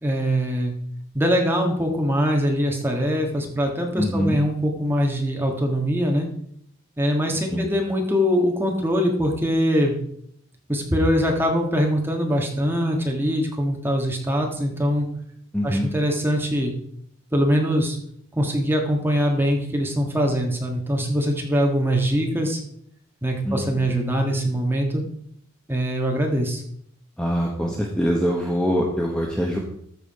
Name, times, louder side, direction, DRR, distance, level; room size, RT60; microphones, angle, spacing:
voice 1, 0.0-0.7 1.1-6.3 7.0-10.0 10.7-15.1 15.6-16.7 17.3-18.0 18.3-22.6 23.2-25.0 25.7-26.6, equal, 10° right, 1 dB, 1.6 m, -22 dB
voice 2, 4.0-4.4 7.5-7.7 15.5-15.9 23.5-23.9 27.2-29.6, equal, 5° left, -1 dB, 1.1 m, -24 dB
13.5 x 4.9 x 4.8 m, 0.67 s
head